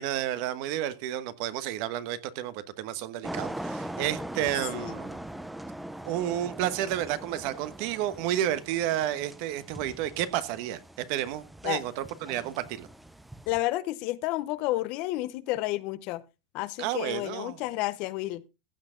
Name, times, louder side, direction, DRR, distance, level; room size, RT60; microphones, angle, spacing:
voice 1, 0.0-5.2 6.0-12.9 16.8-17.6, right 12 dB, 55° right, 1.2 m, -31 dB
sound 1, 3.2-13.6, right 1 dB, 5° right, 0.6 m, -41 dB
voice 2, 13.5-16.2 16.5-18.4, left 17 dB, 45° left, 0.8 m, -31 dB
15.5 x 8.0 x 3.8 m
supercardioid pair, 160°, 2 cm